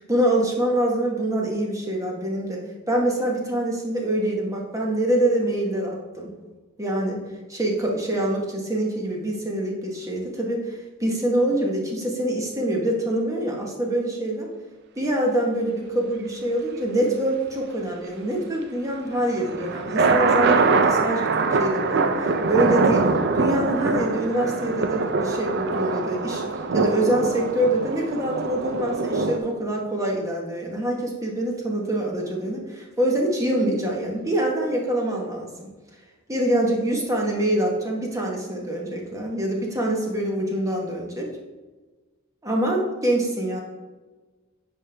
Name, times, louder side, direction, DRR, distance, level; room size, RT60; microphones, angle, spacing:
voice 1, 0.1-6.3 6.8-7.2 7.5-14.5 15.0-26.4 26.7-35.7 36.3-41.3 42.4-43.6, right 1 dB, 15° right, -1 dB, 1.2 m, -25 dB
sound 1, 19.2-29.4, right 4 dB, 55° right, 0.5 m, -23 dB
8.3 x 5.2 x 3.4 m, 1.3 s
head